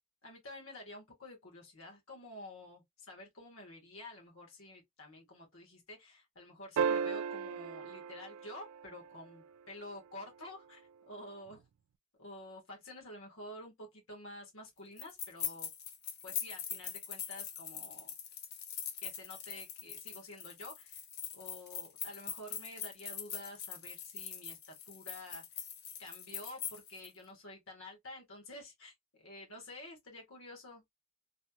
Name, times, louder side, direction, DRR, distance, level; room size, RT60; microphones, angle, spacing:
voice 1, 0.2-11.6 12.2-15.7 16.2-18.1 19.0-21.0 21.3-25.7 26.0-30.8, left 1 dB, 80° left, 1.5 m, -50 dB
sound 1, 6.8-9.3 11.5-11.6, right 6 dB, 90° right, 0.3 m, -35 dB
sound 2, 15.0-27.1, left 8 dB, 50° left, 0.7 m, -43 dB
3.3 x 2.3 x 2.7 m
head